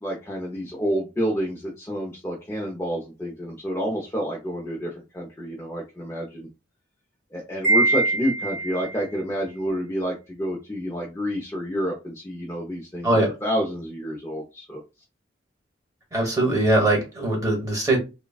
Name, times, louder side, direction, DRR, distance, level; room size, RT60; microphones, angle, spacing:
voice 1, 0.0-6.5 7.3-13.1 13.4-14.8, equal, 15° left, -2 dB, 0.5 m, -29 dB
Wind chime, 7.6-9.0, right 2 dB, 55° right, 1.5 m, -23 dB
voice 2, 16.1-18.0, right 1 dB, 20° right, 0 dB, 1.1 m, -21 dB
3.2 x 2.1 x 2.3 m, 0.27 s
head